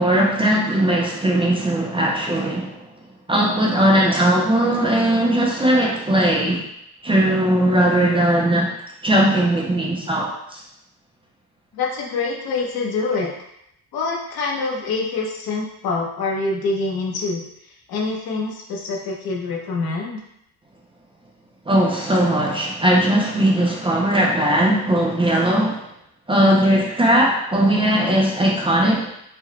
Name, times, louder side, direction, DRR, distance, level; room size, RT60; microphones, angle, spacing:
voice 1, 0.0-2.9 3.3-6.7 7.0-8.7 9.0-10.6 21.7-25.9 26.3-29.1, right 1 dB, 15° right, -3 dB, 0.3 m, -18 dB
voice 2, 11.7-13.3 13.9-17.4 17.9-20.2, left 3 dB, 85° left, -1 dB, 0.9 m, -25 dB
4.7 x 2.1 x 3.1 m, 0.78 s
cardioid pair, 175°, 36 cm